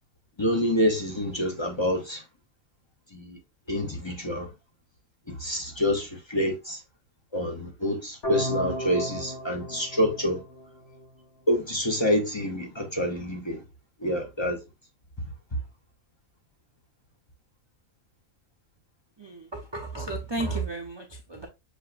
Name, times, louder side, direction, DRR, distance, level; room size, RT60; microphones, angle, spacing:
voice 1, 0.4-2.2 3.1-3.4 3.7-4.5 5.3-6.8 7.3-10.4 11.5-13.6 14.0-14.6, equal, 25° left, 0.6 m, -27 dB
sound 1, 8.2-11.2, equal, 50° left, 3.1 m, -34 dB
voice 2, 19.2-21.5, right 3 dB, 35° right, 0.4 m, -33 dB
6.5 x 2.9 x 2.5 m
omnidirectional pair, 1.5 m